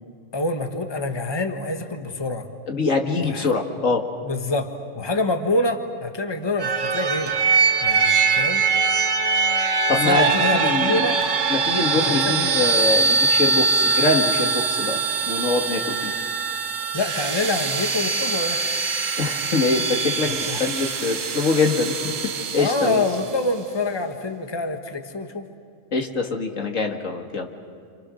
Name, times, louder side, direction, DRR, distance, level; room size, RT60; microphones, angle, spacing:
voice 1, 0.3-2.5 3.2-3.5 4.2-7.3 7.8-8.6 10.0-11.2 11.9-12.6 16.9-18.7 20.2-20.6 22.6-25.5, left 2 dB, 20° left, 6 dB, 1.4 m, -26 dB
voice 2, 2.7-4.0 9.9-11.1 11.5-16.1 19.2-23.0 25.9-27.5, left 3 dB, 80° left, 3 dB, 2.3 m, -24 dB
sound 1, 6.6-23.3, right 4 dB, 75° right, 1.4 m, -22 dB
30.0 x 27.0 x 6.4 m, 2.3 s
omnidirectional pair, 1.3 m